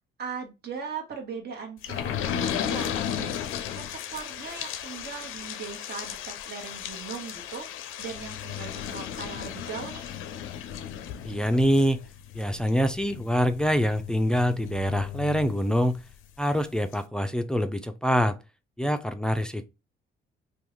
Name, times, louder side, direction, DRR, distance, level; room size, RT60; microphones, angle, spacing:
voice 1, 0.2-7.7 8.0-10.1, right 6 dB, 55° right, 1.1 m, -39 dB
sound 1, 1.8-16.1 16.6-16.7 16.9-17.0, left 9 dB, 90° left, 0.4 m, -35 dB
voice 2, 11.2-12.0 12.3-16.0 16.4-18.4 18.8-19.6, equal, 5° left, 0.3 m, -25 dB
3.6 x 2.3 x 3.0 m
cardioid pair, 90°, 20 cm